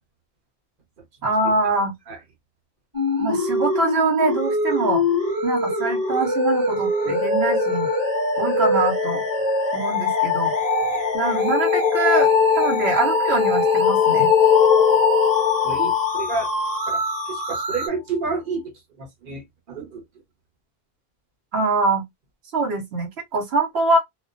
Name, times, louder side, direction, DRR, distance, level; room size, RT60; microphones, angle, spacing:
voice 1, 1.2-1.9 3.2-5.0 5.4-7.9 8.4-9.2 9.7-10.5 11.1-12.3 12.6-14.3 21.5-22.0 22.5-24.0, right 3 dB, 85° right, 1.0 m, -23 dB
sound 1, 2.9-17.9, equal, 20° right, 1.0 m, -25 dB
sound 2, 5.8-17.2, left 9 dB, 55° left, 0.4 m, -22 dB
voice 2, 15.6-16.5 16.9-20.0, right 4 dB, 55° right, 1.0 m, -30 dB
2.3 x 2.2 x 2.5 m
omnidirectional pair, 1.1 m